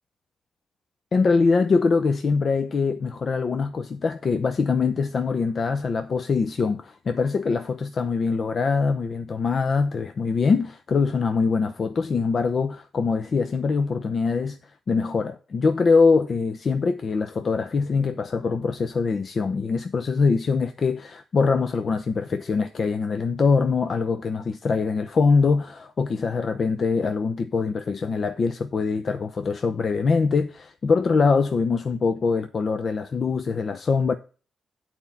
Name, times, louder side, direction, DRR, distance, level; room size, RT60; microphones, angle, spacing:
voice 1, 1.1-14.6 14.9-34.1, left 4 dB, 55° left, 0.7 m, -23 dB
8.8 x 4.4 x 7.1 m
supercardioid pair, 50°, 0 cm